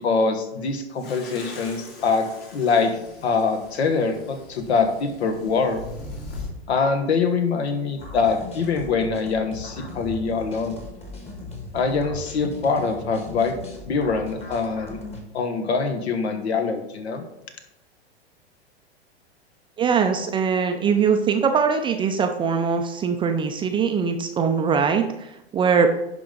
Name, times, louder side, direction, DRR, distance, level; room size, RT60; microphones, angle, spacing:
voice 1, 0.0-2.3 2.5-2.9 3.2-5.8 6.7-10.8 11.7-13.6 13.8-15.0 15.3-17.2, left 4 dB, 75° left, 6 dB, 1.3 m, -24 dB
sound 1, 1.0-6.5, left 2 dB, 50° left, 2.4 m, -40 dB
sound 2, 8.0-15.2, left 2 dB, 20° left, 1.5 m, -38 dB
voice 2, 19.8-25.3 25.5-25.9, right 6 dB, 15° right, 6 dB, 0.4 m, -21 dB
11.0 x 3.8 x 3.8 m, 0.88 s
hypercardioid pair, 110°, 33 cm